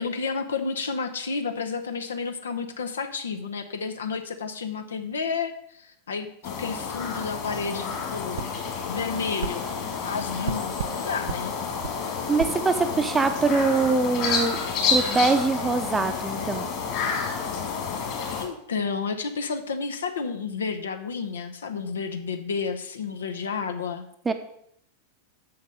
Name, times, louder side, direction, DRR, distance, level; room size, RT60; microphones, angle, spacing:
voice 1, 0.0-9.7 10.0-11.5 18.4-24.1, left 5 dB, 65° left, 7 dB, 0.9 m, -31 dB
sound 1, 6.4-18.5, left 5 dB, 40° left, 2.4 m, -30 dB
sound 2, 8.3-8.5 9.4-9.6 10.4-11.0 11.3-11.4 11.8-12.0 12.4-12.6, right 8 dB, 60° right, 0.4 m, -32 dB
voice 2, 12.3-14.6 14.9-16.7 24.3-24.4, right 4 dB, 15° right, 8 dB, 0.8 m, -23 dB
7.0 x 6.4 x 6.6 m, 0.72 s
figure-of-eight pair, 90°, 0 cm